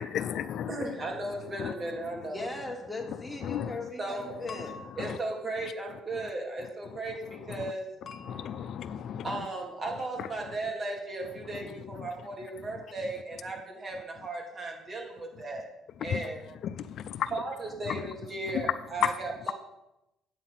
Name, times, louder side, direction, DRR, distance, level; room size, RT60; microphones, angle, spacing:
voice 1, 0.0-0.7 1.6-1.7 3.4-3.8 5.0-5.2 7.6-7.7 8.2-9.3 10.2-10.3 12.0-12.1 16.1-16.2 16.6-17.3 17.9-18.0 18.5-18.6 19.0-19.1, left 9 dB, 60° left, 12 dB, 0.4 m, -33 dB
voice 2, 0.7-2.4 4.0-4.3 5.0-7.8 9.2-15.6 16.0-16.4 17.3-19.5, right 2 dB, 35° right, 0 dB, 3.0 m, -36 dB
sound 1, 1.6-2.0 4.5-6.1 8.1-9.2, left 4 dB, 45° left, 1.1 m, -49 dB
voice 3, 2.2-4.8, left 2 dB, 5° left, 1 dB, 2.2 m, -38 dB
9.0 x 7.7 x 5.8 m, 0.90 s
cardioid pair, 95°, 0 cm